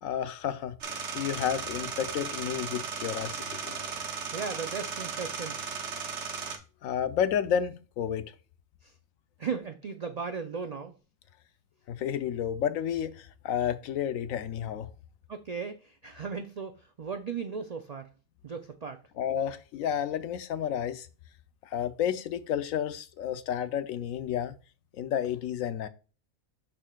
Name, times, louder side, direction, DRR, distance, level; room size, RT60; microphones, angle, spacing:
voice 1, 0.0-3.9 6.8-8.3 11.9-14.9 19.2-21.1 21.6-24.5 24.9-25.9, left 9 dB, 80° left, 1.0 m, -31 dB
sound 1, 0.8-6.6, right 5 dB, 60° right, 1.2 m, -36 dB
voice 2, 4.3-5.6 8.8-8.9 9.4-10.9 15.3-18.1 18.4-19.0, right 5 dB, 85° right, 0.3 m, -36 dB
11.5 x 4.3 x 2.3 m
omnidirectional pair, 1.4 m